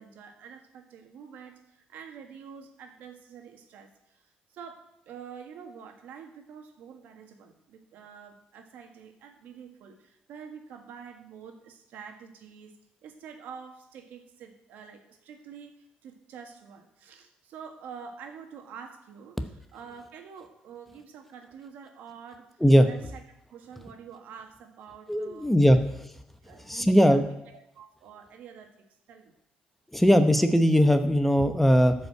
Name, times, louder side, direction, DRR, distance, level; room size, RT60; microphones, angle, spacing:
voice 1, 0.0-4.2 4.5-12.8 13.0-19.4 19.7-22.5 22.8-23.2 23.5-25.5 26.4-28.7 29.1-29.3, right 7 dB, 80° right, 4 dB, 1.8 m, -47 dB
voice 2, 25.1-25.8 26.7-27.3 29.9-31.9, equal, 5° left, 8 dB, 0.8 m, -19 dB
12.5 x 5.5 x 8.0 m, 0.81 s
cardioid pair, 120°, 3 cm